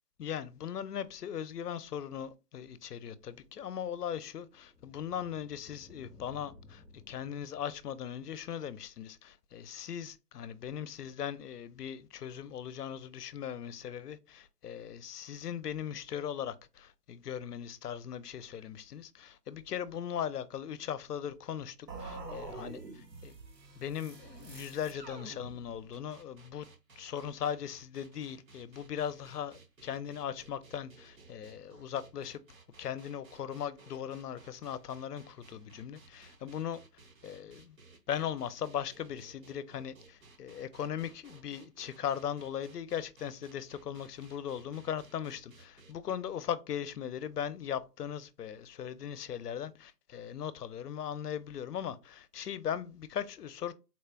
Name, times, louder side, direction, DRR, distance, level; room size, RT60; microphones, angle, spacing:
voice 1, 0.2-23.3 23.8-26.7 27.0-32.4 32.8-36.8 37.2-37.8 38.1-53.7, left 9 dB, 70° left, 0.5 m, -39 dB
sound 1, 3.2-8.5, left 3 dB, ahead, 0.4 m, -58 dB
sound 2, 21.9-26.0, right 3 dB, 85° right, 1.0 m, -46 dB
sound 3, 25.9-45.9, right 3 dB, 55° right, 0.7 m, -58 dB
3.9 x 2.1 x 2.3 m
figure-of-eight pair, 155°, 49 cm